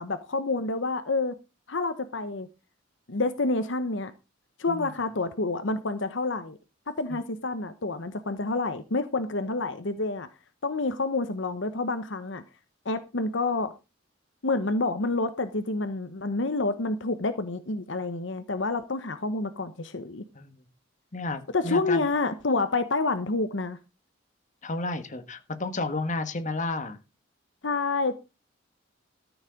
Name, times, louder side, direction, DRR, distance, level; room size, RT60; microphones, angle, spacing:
voice 1, 0.0-1.3 1.7-2.5 3.1-4.1 4.6-6.6 6.9-10.3 10.6-12.4 12.8-13.7 14.4-20.2 21.5-23.8 27.6-28.1, left 3 dB, 70° left, 1.0 m, -28 dB
voice 2, 20.3-20.7 21.1-22.1 24.6-27.0, left 2 dB, 40° left, 1.6 m, -32 dB
13.5 x 7.2 x 5.2 m
head